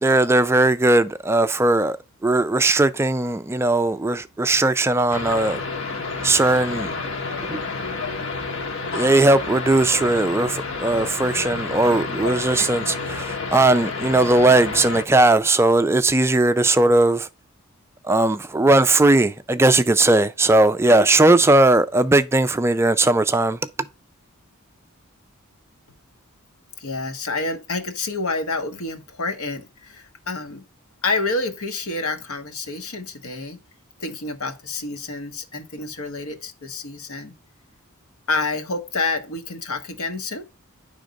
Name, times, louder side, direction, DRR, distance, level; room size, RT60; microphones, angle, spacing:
voice 1, 0.0-5.6 6.2-7.0 7.4-7.6 8.9-17.3 18.0-23.6, right 2 dB, 10° right, 0.3 m, -18 dB
sound 1, 5.1-15.0, left 3 dB, 60° left, 1.1 m, -29 dB
voice 2, 26.8-30.6 31.0-33.6 34.0-37.3 38.3-40.4, left 3 dB, 75° left, 1.3 m, -28 dB
10.5 x 3.5 x 5.1 m
head